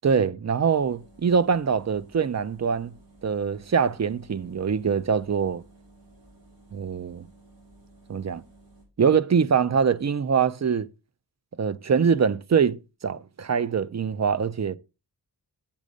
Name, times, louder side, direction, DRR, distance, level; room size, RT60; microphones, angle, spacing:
voice 1, 0.0-2.9 3.2-5.6 6.7-7.3 8.1-8.4 9.0-10.9 11.6-14.8, right 6 dB, 40° right, 0.5 m, -23 dB
sound 1, 0.7-8.8, right 2 dB, 60° right, 5.3 m, -54 dB
7.4 x 5.4 x 5.0 m
wide cardioid pair, 90°, 42 cm